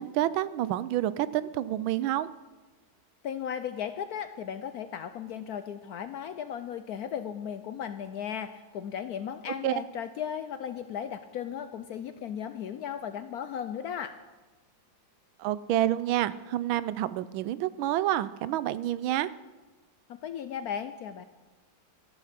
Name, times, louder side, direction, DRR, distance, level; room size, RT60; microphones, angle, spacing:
voice 1, 0.0-2.3 9.6-9.7 15.4-19.3, right 13 dB, 90° right, 17 dB, 1.4 m, -28 dB
voice 2, 3.2-14.1 20.2-21.2, left 8 dB, 70° left, 11 dB, 0.9 m, -36 dB
14.0 x 11.5 x 5.8 m, 1.2 s
omnidirectional pair, 2.1 m